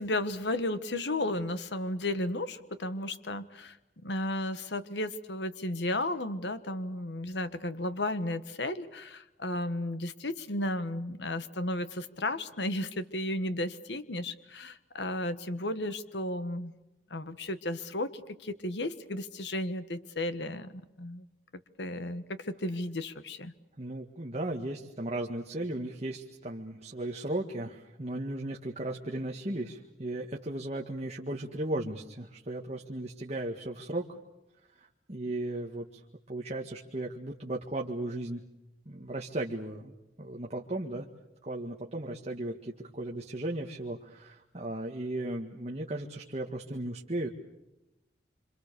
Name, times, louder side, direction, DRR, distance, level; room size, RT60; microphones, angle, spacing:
voice 1, 0.0-3.8 4.0-16.7 17.1-21.2 21.8-23.5, left 1 dB, 75° left, 12 dB, 1.4 m, -34 dB
voice 2, 23.8-34.1 34.7-36.0 36.3-38.4 38.9-41.1 41.4-47.3, right 1 dB, 40° right, 0 dB, 1.8 m, -36 dB
27.0 x 27.0 x 6.9 m, 0.96 s
head